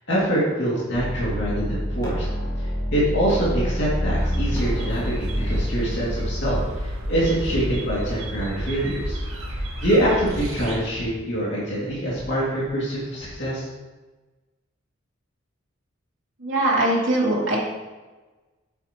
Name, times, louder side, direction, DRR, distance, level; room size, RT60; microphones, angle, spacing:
voice 1, 0.1-2.3 2.6-9.2 9.5-13.7, right 1 dB, 55° left, -7 dB, 2.5 m, -25 dB
sound 1, 0.9-6.7, equal, 15° left, 1.8 m, -27 dB
sound 2, 4.2-10.8, equal, 85° right, 1.8 m, -31 dB
voice 2, 16.4-17.6, right 1 dB, 65° right, -4 dB, 2.6 m, -21 dB
9.1 x 8.9 x 3.0 m, 1.2 s
head